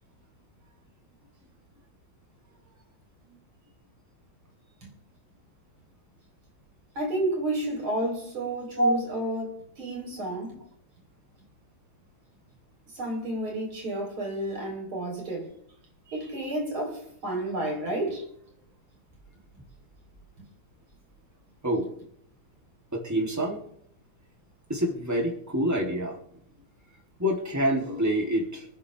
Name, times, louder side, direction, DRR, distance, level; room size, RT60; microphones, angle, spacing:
voice 1, 7.0-10.6 12.9-15.5 16.1-18.3, right 1 dB, 85° right, 5.2 m, -31 dB
voice 2, 22.9-23.6 24.7-26.2 27.2-28.6, equal, 10° right, 3.2 m, -26 dB
26.0 x 9.4 x 3.6 m
omnidirectional pair, 2.2 m